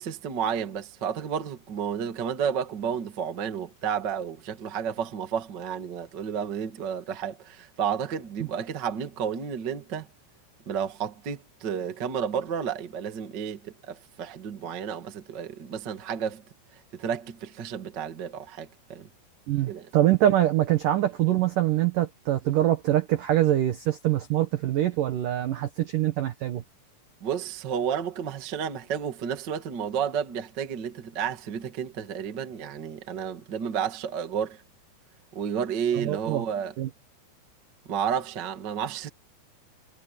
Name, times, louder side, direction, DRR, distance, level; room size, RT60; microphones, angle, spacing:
voice 1, 0.0-10.1 10.6-16.4 16.9-19.1 19.7-19.9 27.2-34.6 35.3-36.7 37.8-39.1, right 7 dB, 55° right, 1.2 m, -31 dB
voice 2, 19.5-26.6 35.9-36.4 36.8-36.9, right 13 dB, 75° right, 1.9 m, -24 dB
omnidirectional pair, 5.7 m